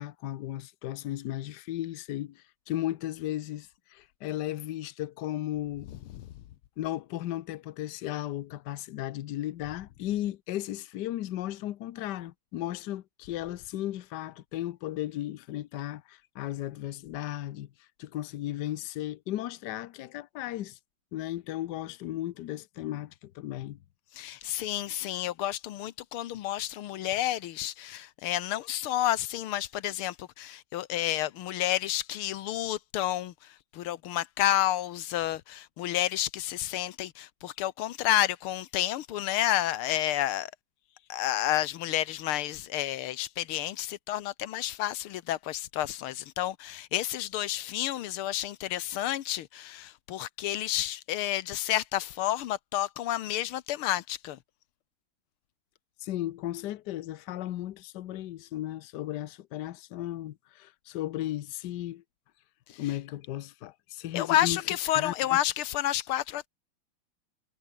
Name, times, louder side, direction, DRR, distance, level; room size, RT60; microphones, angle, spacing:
voice 1, 0.0-5.9 6.8-17.7 18.0-20.8 21.1-23.8 56.0-62.0 62.8-64.6 64.9-65.1, left 13 dB, 65° left, 1.2 m, -35 dB
voice 2, 5.9-6.3 24.1-40.5 41.1-54.4 62.7-62.8 64.1-66.5, left 13 dB, 90° left, 1.8 m, -30 dB
omnidirectional pair, 2.3 m